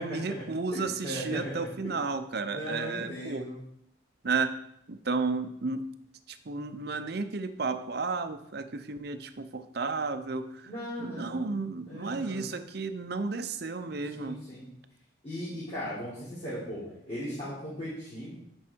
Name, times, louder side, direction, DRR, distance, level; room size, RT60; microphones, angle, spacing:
voice 1, 0.0-3.5 4.2-4.5 4.9-5.8 6.3-10.7 11.0-14.4, right 4 dB, 55° right, 10 dB, 0.6 m, -33 dB
voice 2, 0.7-1.6 2.5-3.5 10.6-11.6 11.9-12.6 14.1-14.7 15.2-16.8 17.1-18.3, equal, 30° left, -12 dB, 3.3 m, -37 dB
9.8 x 6.2 x 4.5 m, 0.76 s
head